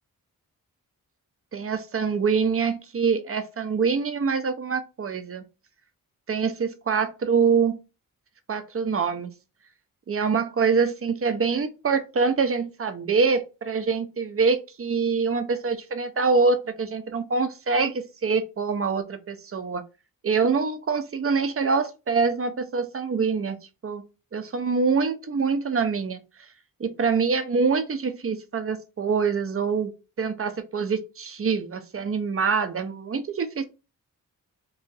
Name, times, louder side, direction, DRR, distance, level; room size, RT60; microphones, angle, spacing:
voice 1, 1.5-5.4 6.3-7.8 8.5-9.3 10.1-19.8 20.2-23.6 23.8-24.0 24.3-26.2 26.8-29.9 30.2-33.6, right 5 dB, 40° right, 0.7 m, -25 dB
3.1 x 2.6 x 3.9 m
cardioid pair, 65°, 35 cm